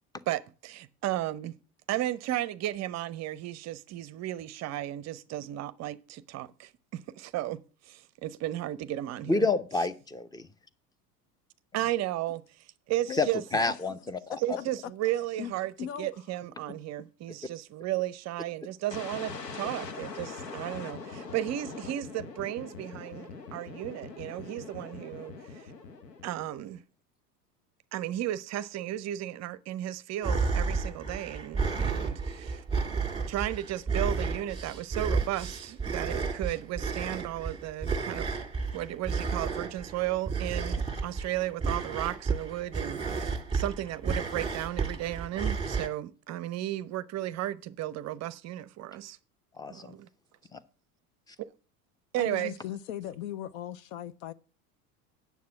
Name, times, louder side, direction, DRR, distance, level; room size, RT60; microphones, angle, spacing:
voice 1, 0.3-1.6 1.9-9.5 11.7-13.4 14.4-15.7 16.0-25.7 26.2-26.8 27.9-32.6 33.3-38.3 38.7-49.2 49.7-50.1 51.4-51.5 52.1-52.5, right 14 dB, 35° right, 0.6 m, -34 dB
voice 2, 9.3-10.5 13.2-13.3 13.5-14.4 49.6-50.0 50.5-50.6, left 3 dB, 10° left, 0.7 m, -28 dB
voice 3, 15.8-16.1 52.2-54.3, left 10 dB, 60° left, 0.7 m, -38 dB
sound 1, 18.9-26.8, left 4 dB, 85° left, 1.1 m, -42 dB
sound 2, 30.2-45.9, right 4 dB, 10° right, 2.0 m, -32 dB
9.4 x 7.0 x 5.9 m
figure-of-eight pair, 75°, 47 cm